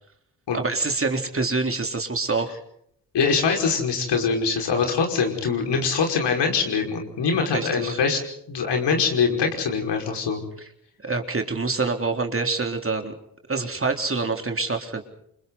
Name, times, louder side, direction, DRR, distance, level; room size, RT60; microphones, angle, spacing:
voice 1, 0.5-2.6 7.5-8.0 10.6-10.7 11.0-13.1 13.5-15.0, right 3 dB, 30° right, 4 dB, 3.9 m, -26 dB
voice 2, 3.1-8.2 8.5-10.4, left 5 dB, 60° left, 3 dB, 5.5 m, -23 dB
29.0 x 27.0 x 4.1 m, 0.72 s
hypercardioid pair, 40°, 46 cm